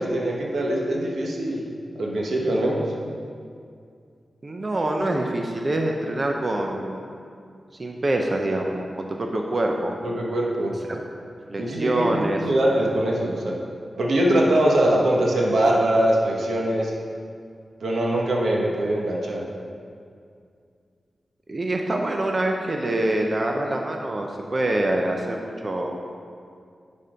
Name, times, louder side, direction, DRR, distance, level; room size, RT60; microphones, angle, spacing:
voice 1, 0.0-1.6 1.9-2.9 10.0-10.8 11.6-13.5 14.0-16.9 17.8-19.4, right 1 dB, 90° right, -2 dB, 1.2 m, -22 dB
voice 2, 4.4-7.0 7.8-9.9 10.9-11.0 11.5-12.4 21.5-26.0, right 1 dB, 30° right, 1 dB, 0.5 m, -25 dB
10.0 x 4.2 x 5.0 m, 2.3 s
wide cardioid pair, 180°, 0 cm